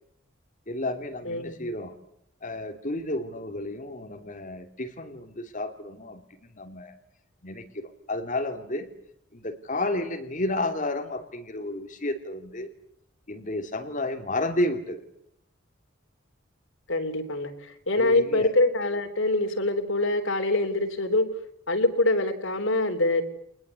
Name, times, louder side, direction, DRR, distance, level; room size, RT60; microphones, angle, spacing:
voice 1, 0.7-1.9 2.4-6.9 7.4-8.9 9.3-12.7 13.3-15.0 17.9-18.5, left 1 dB, 40° left, 5 dB, 3.0 m, -31 dB
voice 2, 1.2-1.7 16.9-17.5 17.9-21.2 21.7-23.2, left 2 dB, 85° left, 6 dB, 3.4 m, -24 dB
25.5 x 20.5 x 8.3 m, 0.74 s
head